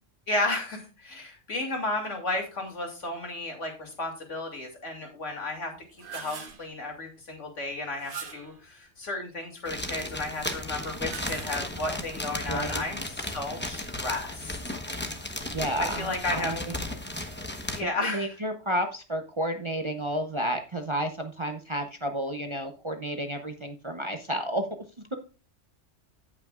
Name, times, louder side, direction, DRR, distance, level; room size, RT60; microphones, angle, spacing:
voice 1, 0.3-5.7 6.1-14.7 15.8-16.5 17.7-18.3, left 2 dB, 75° left, 2 dB, 2.8 m, -33 dB
sound 1, 5.7-6.7 7.9-8.6 10.8-11.9, right 6 dB, 45° right, 1.2 m, -42 dB
sound 2, 9.7-17.8, left 1 dB, 10° left, 0.9 m, -35 dB
voice 2, 12.5-12.8 15.5-16.6 17.8-24.7, right 1 dB, 30° right, 5 dB, 0.7 m, -31 dB
16.5 x 5.8 x 2.4 m, 0.32 s
omnidirectional pair, 1.3 m